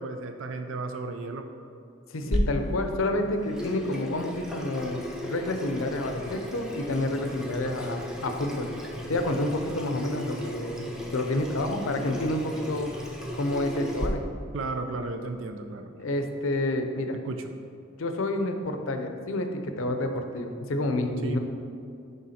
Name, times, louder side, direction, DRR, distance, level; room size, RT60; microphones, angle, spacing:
voice 1, 0.0-1.5 14.5-15.9 17.2-17.5 21.2-21.4, right 3 dB, 75° right, 6 dB, 0.5 m, -34 dB
voice 2, 2.1-8.7 9.1-10.8 11.1-12.9 13.3-14.2 16.0-17.2 18.0-21.4, left 1 dB, 80° left, 6 dB, 0.6 m, -29 dB
Water tap faucet / Sink (filling or washing), 2.3-14.1, left 1 dB, 5° right, 0.6 m, -35 dB
10.5 x 3.6 x 4.2 m, 2.5 s
head